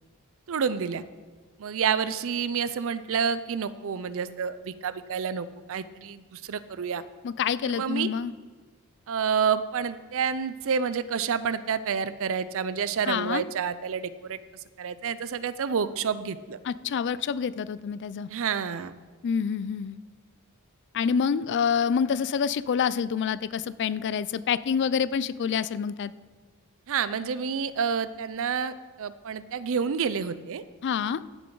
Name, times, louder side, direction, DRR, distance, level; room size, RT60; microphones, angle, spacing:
voice 1, 0.5-1.0 1.6-7.0 7.6-8.1 9.1-14.4 14.8-16.6 18.3-18.9 26.9-30.6, right 6 dB, 65° right, 15 dB, 0.5 m, -29 dB
voice 2, 7.2-8.3 13.0-13.4 16.6-18.3 19.2-20.0 20.9-26.1 30.8-31.2, left 7 dB, 55° left, 17 dB, 0.4 m, -27 dB
15.5 x 6.9 x 3.9 m, 1.5 s
head